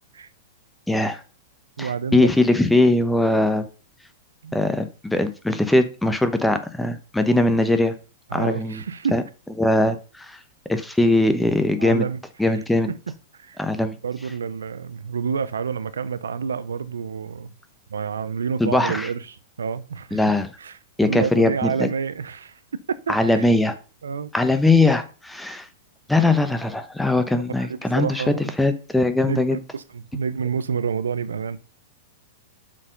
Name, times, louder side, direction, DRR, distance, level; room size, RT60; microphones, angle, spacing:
voice 1, 0.9-1.2 1.8-3.7 4.5-7.9 8.3-8.8 9.1-9.2 9.6-10.4 10.7-12.1 12.4-12.9 13.6-13.9 18.6-19.1 20.1-20.5 21.0-21.9 23.1-23.7 24.3-25.7 26.1-29.6, left 2 dB, 5° left, 0.9 m, -20 dB
voice 2, 1.8-2.3 4.4-4.6 8.3-9.2 11.8-12.6 12.9-13.6 14.0-17.5 17.9-20.2 20.6-22.6 23.1-23.5 24.0-24.3 27.6-28.6 29.2-31.7, right 6 dB, 85° right, 0.5 m, -29 dB
7.2 x 4.6 x 5.2 m
hypercardioid pair, 115°, 0 cm